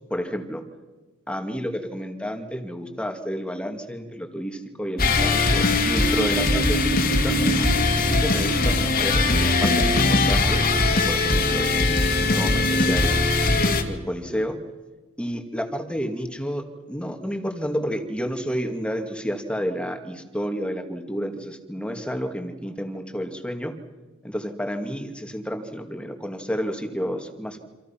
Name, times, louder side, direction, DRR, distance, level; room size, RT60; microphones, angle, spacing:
voice 1, 0.1-0.6 1.3-7.4 8.0-13.2 13.9-14.6 15.2-23.7 24.2-27.6, equal, 5° left, 5 dB, 2.2 m, -30 dB
sound 1, 5.0-13.8, left 2 dB, 40° left, 2.5 m, -20 dB
27.5 x 27.0 x 5.9 m, 1.2 s
head